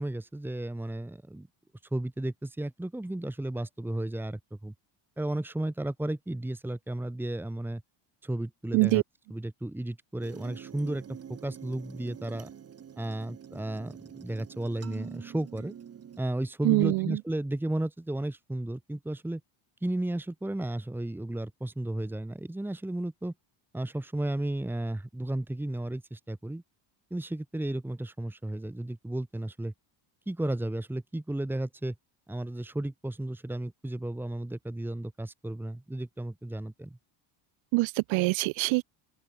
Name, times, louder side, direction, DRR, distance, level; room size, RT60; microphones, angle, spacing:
voice 1, 0.0-1.5 1.9-4.7 5.2-7.8 8.2-9.0 9.3-11.0 11.3-12.5 13.0-15.7 16.2-19.4 19.8-23.3 23.7-26.6 27.1-29.7 30.3-31.9 32.3-37.0, right 1 dB, 5° right, 2.7 m, -33 dB
sound 1, 10.2-16.2, right 8 dB, 30° right, 4.7 m, -46 dB
voice 2, 16.6-17.2 37.7-38.8, right 23 dB, 65° right, 1.2 m, -24 dB
open air
cardioid pair, 170°, 50 cm